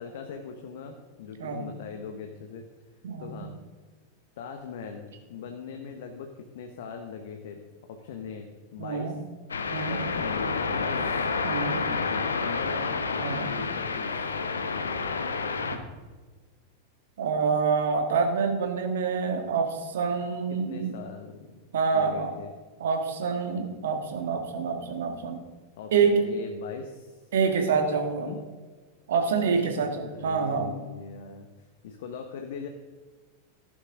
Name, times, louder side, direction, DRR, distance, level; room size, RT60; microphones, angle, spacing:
voice 1, 0.0-2.6 3.2-3.5 4.4-7.6 7.9-9.1 9.9-11.2 11.7-14.2 20.7-22.5 25.8-27.2 28.2-28.4 29.4-32.7, left 6 dB, 55° left, 4 dB, 1.3 m, -40 dB
voice 2, 3.0-3.5 8.8-9.2 9.7-10.0 11.4-11.8 13.2-13.5 17.2-20.9 21.7-22.3 22.8-25.4 25.9-26.1 27.3-28.3 29.1-30.8, right 5 dB, 60° right, 5 dB, 1.9 m, -27 dB
sound 1, 9.5-15.8, left 4 dB, 75° left, 1.0 m, -29 dB
15.0 x 11.5 x 3.8 m, 1.4 s
figure-of-eight pair, 90°, 0 cm